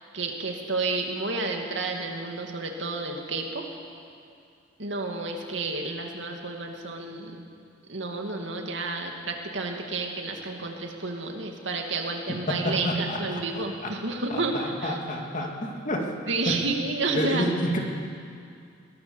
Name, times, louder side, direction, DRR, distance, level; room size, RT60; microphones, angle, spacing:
voice 1, 0.1-3.7 4.8-7.4 7.9-15.0 16.3-17.5, right 3 dB, 70° right, 2 dB, 2.6 m, -30 dB
voice 2, 12.5-13.9 14.3-16.1 16.5-16.6 17.1-17.8, equal, 40° left, 1 dB, 2.5 m, -29 dB
21.5 x 17.5 x 7.2 m, 2.3 s
head